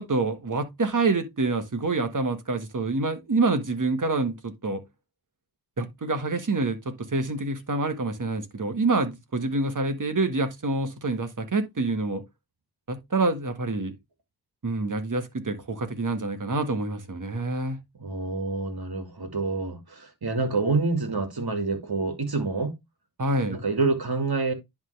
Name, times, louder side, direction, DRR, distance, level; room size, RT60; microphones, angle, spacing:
voice 1, 0.0-4.8 5.8-12.2 12.9-13.9 14.6-17.8 23.2-23.6, right 3 dB, 50° right, 1.6 m, -27 dB
voice 2, 17.9-22.7 23.5-24.5, right 3 dB, 65° right, 2.2 m, -27 dB
10.5 x 3.7 x 3.3 m
cardioid pair, 40°, 41 cm